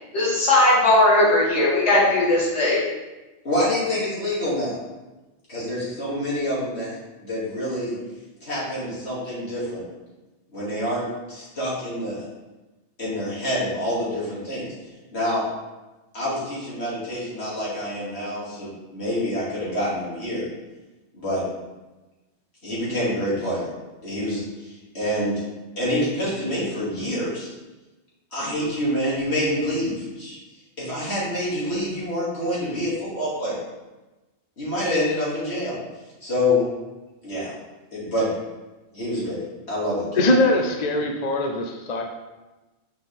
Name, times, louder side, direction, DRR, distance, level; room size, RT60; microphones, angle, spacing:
voice 1, 0.1-2.8, left 2 dB, 85° left, -6 dB, 2.1 m, -18 dB
voice 2, 3.4-4.7 5.5-8.0 8.4-9.8 10.5-11.0 11.3-12.2 13.0-14.7 15.1-15.4 16.1-20.5 21.1-21.4 22.6-23.7 24.0-25.4 25.8-27.5 28.3-30.4 30.8-33.6 34.6-35.8 36.2-36.6 37.2-37.5 37.9-38.3 38.9-39.4 39.7-40.1, left 1 dB, 70° left, -8 dB, 2.9 m, -26 dB
voice 3, 40.2-42.0, left 2 dB, 45° left, 3 dB, 0.7 m, -21 dB
6.3 x 5.9 x 3.6 m, 1.1 s
omnidirectional pair, 1.1 m